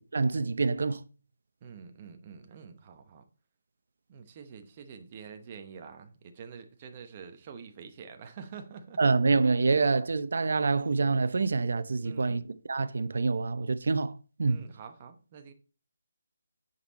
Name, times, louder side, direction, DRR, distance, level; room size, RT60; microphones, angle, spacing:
voice 1, 0.1-1.0 9.0-14.1 14.4-14.6, right 4 dB, 60° right, 0.7 m, -26 dB
voice 2, 1.6-3.2 4.1-9.0 12.0-12.4 14.5-15.5, right 6 dB, 20° right, 0.9 m, -47 dB
9.1 x 5.5 x 4.2 m
hypercardioid pair, 175°, 0 cm